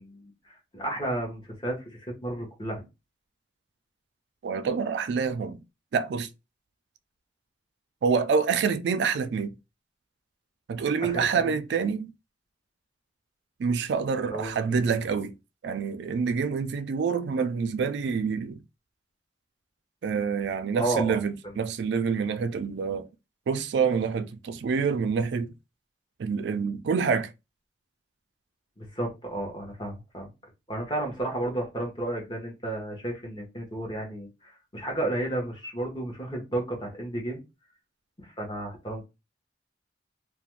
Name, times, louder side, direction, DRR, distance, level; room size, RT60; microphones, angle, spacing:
voice 1, 0.0-2.9 11.0-11.5 14.2-14.8 20.7-21.2 28.8-30.3 30.7-37.4 38.2-39.1, right 1 dB, 25° left, 0.9 m, -32 dB
voice 2, 4.4-5.6 5.9-6.3 8.0-9.6 10.7-12.1 13.6-15.3 15.6-18.6 20.0-23.0 23.5-25.5 26.2-27.3, right 5 dB, 65° right, 0.3 m, -27 dB
2.4 x 2.1 x 3.0 m
head